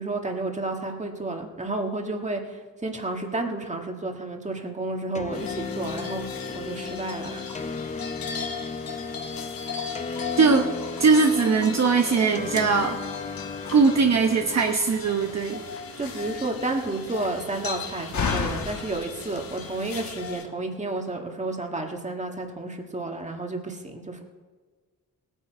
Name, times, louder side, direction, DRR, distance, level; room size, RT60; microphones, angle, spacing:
voice 1, 0.0-7.8 16.0-24.2, right 2 dB, 20° right, 3 dB, 1.7 m, -31 dB
sound 1, 5.1-14.7, left 4 dB, 20° left, 0.7 m, -35 dB
sound 2, 5.3-20.4, left 6 dB, 90° left, 1.7 m, -38 dB
voice 2, 10.4-10.7 11.0-13.0 13.7-15.6, right 4 dB, 50° right, 3 dB, 1.0 m, -20 dB
Slam, 12.7-20.3, left 5 dB, 55° left, 1.3 m, -36 dB
19.5 x 9.2 x 4.6 m, 1.4 s
wide cardioid pair, 110°, 34 cm